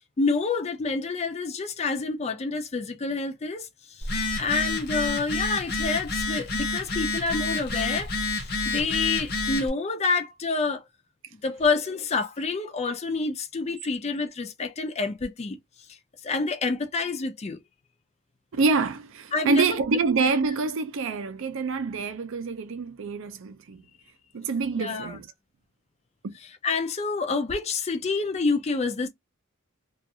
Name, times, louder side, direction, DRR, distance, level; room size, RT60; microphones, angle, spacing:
voice 1, 0.2-10.8 11.4-15.6 15.9-16.0 16.2-17.6 19.3-19.8 24.8-25.1 26.6-29.1, left 4 dB, 30° left, 0.4 m, -28 dB
Telephone, 4.0-9.7, left 3 dB, 45° left, 0.8 m, -29 dB
voice 2, 18.5-23.8 24.3-25.3 26.2-26.3, right 4 dB, 60° right, 0.5 m, -26 dB
2.4 x 2.3 x 2.7 m
head